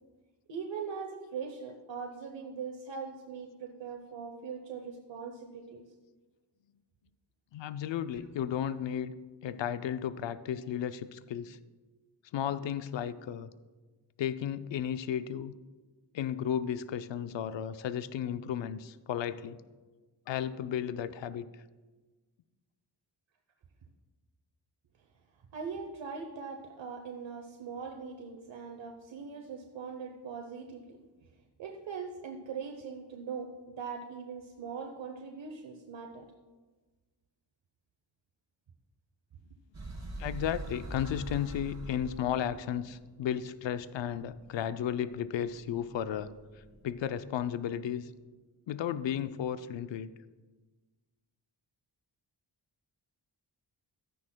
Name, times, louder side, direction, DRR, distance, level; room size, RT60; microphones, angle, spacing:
voice 1, 0.5-5.8 25.5-31.0 31.6-36.3, right 5 dB, 70° right, 3 dB, 0.9 m, -41 dB
voice 2, 7.5-9.1 9.4-11.6 12.3-13.5 14.2-15.5 16.1-19.6 20.3-21.5 40.2-46.3 46.8-48.1 48.7-50.1, left 9 dB, 70° left, 13 dB, 0.5 m, -34 dB
sound 1, 39.7-47.1, right 2 dB, 35° right, 2.0 m, -45 dB
12.5 x 9.7 x 2.2 m, 1.3 s
cardioid pair, 60°, 46 cm